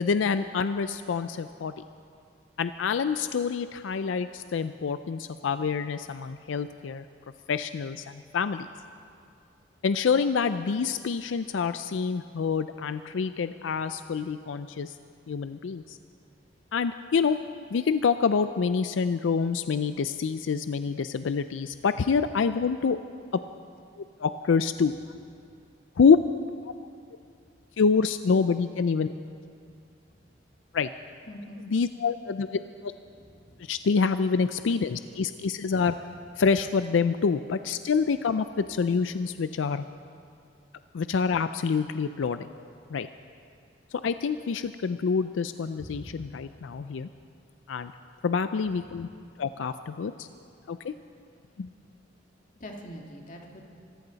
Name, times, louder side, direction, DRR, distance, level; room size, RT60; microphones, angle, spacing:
voice 1, 0.0-1.7 2.6-7.1 7.5-8.7 9.8-15.0 15.3-16.0 16.7-17.4 17.7-23.0 23.3-23.4 24.2-24.9 26.0-26.2 26.6-26.7 27.8-29.1 30.7-30.9 31.7-32.9 33.6-35.9 36.4-39.8 40.9-42.5 42.9-43.1 43.9-47.1 47.7-47.9 48.2-49.1 49.4-50.3 50.7-50.9 51.6-51.7, left 5 dB, 90° left, 11 dB, 0.4 m, -26 dB
voice 2, 31.3-31.6 33.2-33.7 45.8-46.4 52.6-53.6, equal, 45° left, 1 dB, 1.9 m, -44 dB
25.0 x 14.5 x 4.0 m, 2.3 s
head